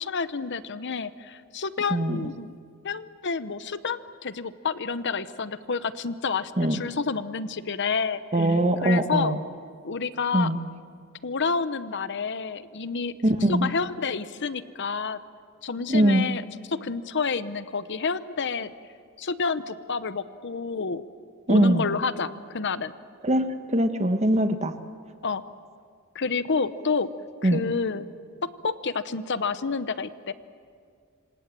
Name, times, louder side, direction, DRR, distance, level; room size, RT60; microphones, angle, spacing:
voice 1, 0.0-2.6 2.8-8.5 8.8-9.4 9.8-10.5 11.2-13.1 13.5-15.2 15.6-16.4 16.7-18.7 19.2-21.0 21.5-22.9 25.2-25.4 26.1-27.1 27.4-28.1 28.4-30.3, left 5 dB, 55° left, 13 dB, 0.9 m, -29 dB
voice 2, 1.9-2.3 6.6-6.8 8.3-9.4 10.3-10.6 13.2-13.7 15.9-16.3 21.5-21.9 23.2-24.7 27.4-27.6, right 1 dB, 30° right, 7 dB, 1.4 m, -22 dB
27.0 x 26.0 x 7.5 m, 2.2 s
head